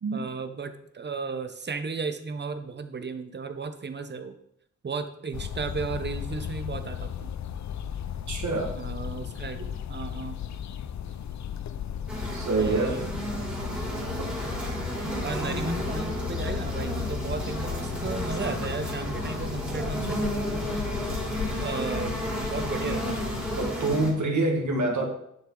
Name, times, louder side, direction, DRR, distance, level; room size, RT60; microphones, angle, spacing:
voice 1, 0.1-4.4 4.8-7.3 8.7-10.4 12.6-13.1 15.2-20.6 21.6-22.1 22.4-23.2, right 4 dB, 35° right, 8 dB, 0.8 m, -34 dB
sound 1, 5.3-23.7, left 9 dB, 70° left, 0.5 m, -35 dB
sound 2, 7.7-10.1 10.4-12.8, left 2 dB, 50° left, 2.3 m, -53 dB
voice 2, 8.3-8.7 12.3-13.0 23.6-25.0, right 2 dB, 75° right, 1 dB, 1.9 m, -26 dB
sound 3, 12.1-24.1, equal, 5° right, 3.1 m, -32 dB
10.5 x 6.1 x 3.8 m, 0.74 s
wide cardioid pair, 130°, 30 cm